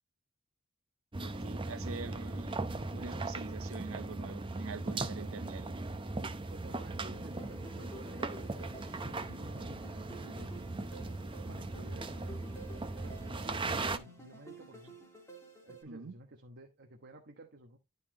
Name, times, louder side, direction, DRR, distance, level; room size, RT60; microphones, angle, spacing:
sound 1, 1.1-14.0, right 2 dB, 25° right, 0.7 m, -38 dB
voice 1, 1.2-2.5 2.9-5.7 15.9-16.1, right 4 dB, 65° right, 0.6 m, -45 dB
voice 2, 6.5-9.8 10.2-10.7 11.5-15.1 15.6-17.8, right 2 dB, 50° right, 1.1 m, -54 dB
sound 2, 7.1-15.8, right 1 dB, 15° left, 2.4 m, -52 dB
11.5 x 4.2 x 3.8 m
head